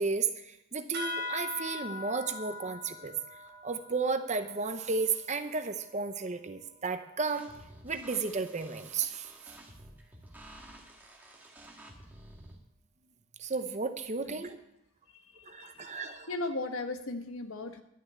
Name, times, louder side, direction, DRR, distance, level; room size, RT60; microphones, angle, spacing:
voice 1, 0.0-3.1 3.6-7.5 7.8-9.3 13.4-14.6 15.4-16.3, right 4 dB, 35° right, 9 dB, 0.8 m, -33 dB
sound 1, 0.9-5.9, left 3 dB, 50° right, 2.9 m, -41 dB
sound 2, 7.3-12.6, right 1 dB, 10° right, 1.9 m, -52 dB
voice 2, 15.6-17.8, left 2 dB, 90° left, 7 dB, 1.2 m, -37 dB
11.5 x 7.0 x 9.1 m, 0.82 s
head